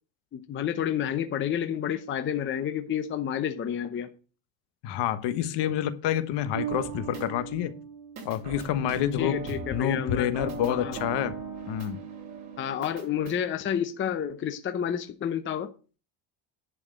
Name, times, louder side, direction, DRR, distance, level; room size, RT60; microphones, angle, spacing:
voice 1, 0.3-4.1 9.2-10.3 10.6-11.0 12.6-15.7, left 9 dB, 25° left, 0.8 m, -30 dB
voice 2, 4.8-7.7 8.2-9.4 9.7-11.3 11.7-12.0, left 10 dB, 60° left, 1.3 m, -28 dB
Bass guitar, 6.5-9.6, right 9 dB, 55° right, 3.3 m, -39 dB
sound 1, 6.7-7.7 8.2-13.4, right 4 dB, 35° right, 6.8 m, -39 dB
11.0 x 4.7 x 7.9 m
cardioid pair, 155°, 48 cm